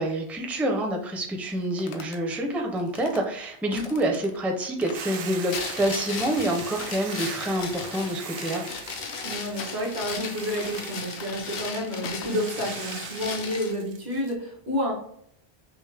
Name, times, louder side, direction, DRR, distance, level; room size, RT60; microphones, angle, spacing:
voice 1, 0.0-8.6, right 1 dB, ahead, 2 dB, 0.4 m, -27 dB
sound 1, 1.5-2.2 2.8-3.2 3.7-4.4 4.8-5.2 5.6-6.2 6.6-7.1 7.4-8.1 8.7-9.2 9.6-10.2 10.5-10.9 11.2-11.6 12.0-12.4, left 6 dB, 90° left, 0.9 m, -44 dB
Hiss / Boiling, 4.9-14.3, right 6 dB, 65° right, 0.7 m, -41 dB
sound 2, 5.5-13.8, left 5 dB, 70° left, 0.8 m, -36 dB
voice 2, 9.2-14.9, equal, 80° right, -4 dB, 1.6 m, -30 dB
5.9 x 2.1 x 3.4 m, 0.67 s
omnidirectional pair, 1.1 m